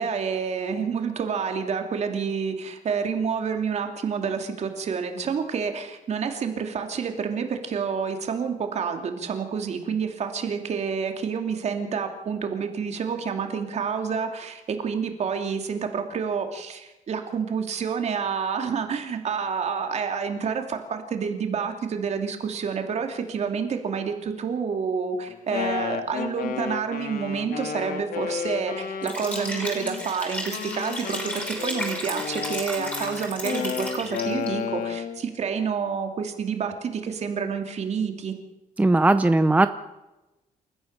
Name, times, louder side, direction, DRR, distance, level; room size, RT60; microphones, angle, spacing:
voice 1, 0.0-38.3, right 6 dB, 50° right, 5 dB, 2.8 m, -28 dB
Wind instrument woodwind instrument, 25.3-30.0 30.5-35.2, left 8 dB, 85° left, 2.0 m, -32 dB
Liquid, 29.0-34.5, equal, 10° left, 5.2 m, -34 dB
voice 2, 38.8-39.7, right 2 dB, 10° right, 10 dB, 0.6 m, -18 dB
29.0 x 14.5 x 6.7 m, 1.0 s
cardioid pair, 155°, 14 cm